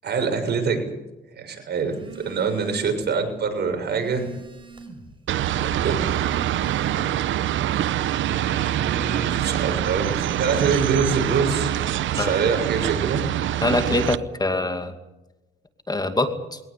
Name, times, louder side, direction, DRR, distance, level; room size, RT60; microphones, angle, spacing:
voice 1, 0.0-0.8 1.3-4.3 5.5-6.3 8.2-11.8 12.1-13.2, right 5 dB, 55° right, 5 dB, 6.6 m, -25 dB
Telephone, 1.9-3.1 3.5-5.1 5.8-7.3, right 3 dB, 25° right, 5.3 m, -41 dB
sound 1, 5.3-14.2, right 12 dB, 75° right, 0.9 m, -25 dB
voice 2, 13.6-14.9 15.9-16.6, left 2 dB, 20° left, 8 dB, 2.4 m, -24 dB
22.0 x 19.0 x 8.4 m, 1.0 s
cardioid pair, 90°, 20 cm